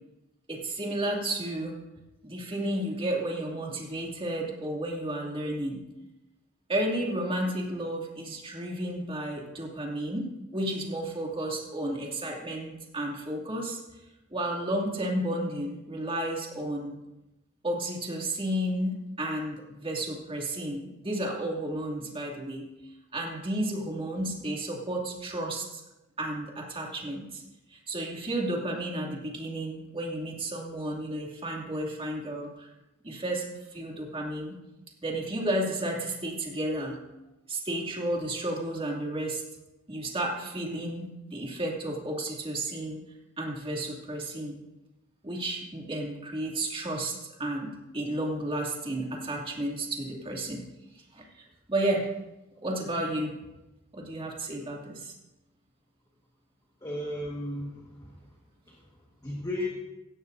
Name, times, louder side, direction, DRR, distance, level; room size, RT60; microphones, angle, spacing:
voice 1, 0.5-1.8 2.2-5.8 6.7-10.3 10.5-13.8 14.3-17.0 17.6-22.7 23.1-25.8 26.2-27.4 27.7-32.7 33.0-34.6 35.0-37.0 37.5-39.4 39.9-43.0 43.4-44.6 45.2-50.6 51.1-51.2 51.7-52.1 52.6-53.3 53.9-55.1, right 1 dB, 25° right, -1 dB, 2.6 m, -32 dB
voice 2, 56.8-58.3 58.7-59.7, left 1 dB, 20° left, -2 dB, 1.6 m, -35 dB
17.5 x 13.5 x 2.7 m, 0.98 s
head